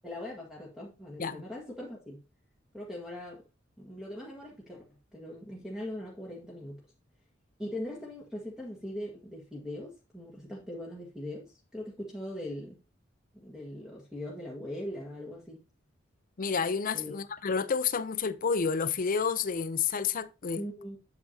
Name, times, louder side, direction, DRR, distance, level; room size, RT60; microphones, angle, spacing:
voice 1, 0.0-2.2 2.7-3.5 3.8-4.8 5.1-6.8 7.6-12.8 13.3-15.6 16.9-17.2 20.5-21.0, left 1 dB, 5° right, 1.6 m, -40 dB
voice 2, 16.4-20.6, left 6 dB, 45° left, 0.5 m, -30 dB
8.2 x 7.3 x 2.8 m
head